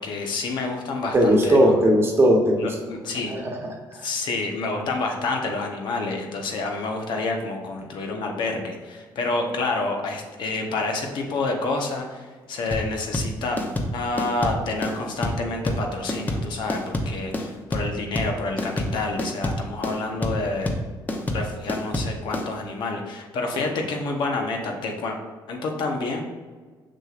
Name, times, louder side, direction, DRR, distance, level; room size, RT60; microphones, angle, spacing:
voice 1, 0.0-1.7 2.5-3.3 4.0-13.6 13.9-20.7 21.3-25.2 25.5-26.2, left 3 dB, 70° left, 2 dB, 1.0 m, -28 dB
voice 2, 1.1-2.6 3.3-4.1, equal, 30° right, 1 dB, 1.1 m, -19 dB
sound 1, 12.7-22.5, left 1 dB, 20° left, 0.8 m, -27 dB
6.4 x 6.0 x 2.5 m, 1.4 s
cardioid pair, 115°, 8 cm